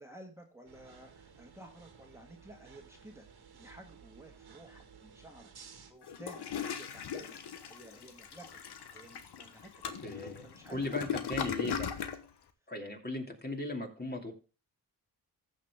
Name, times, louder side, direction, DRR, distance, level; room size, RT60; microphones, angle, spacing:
voice 1, 0.0-7.4 7.6-8.6 8.9-9.8 10.1-11.6, right 1 dB, 5° right, 2 dB, 1.8 m, -54 dB
sound 1, 0.7-5.9, right 6 dB, 65° right, 1.9 m, -56 dB
Toilet flush, 6.0-12.2, left 8 dB, 75° left, 1.2 m, -38 dB
voice 2, 10.0-12.0 12.7-14.3, left 2 dB, 25° left, 2 dB, 2.6 m, -38 dB
14.5 x 6.6 x 3.6 m, 0.34 s
cardioid pair, 55°, 41 cm